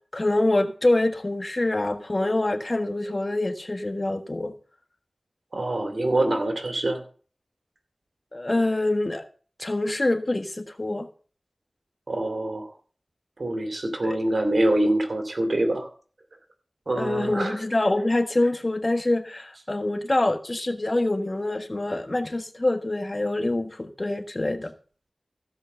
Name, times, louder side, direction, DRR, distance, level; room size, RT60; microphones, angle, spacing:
voice 1, 0.1-4.5 8.3-9.2 9.6-11.1 14.0-14.2 17.0-24.7, left 2 dB, 40° left, 7 dB, 1.4 m, -25 dB
voice 2, 5.5-7.0 12.1-12.7 13.4-15.9 16.9-17.6, right 1 dB, 65° right, 5 dB, 2.5 m, -25 dB
15.5 x 5.2 x 6.7 m, 0.42 s
cardioid pair, 40°, 0 cm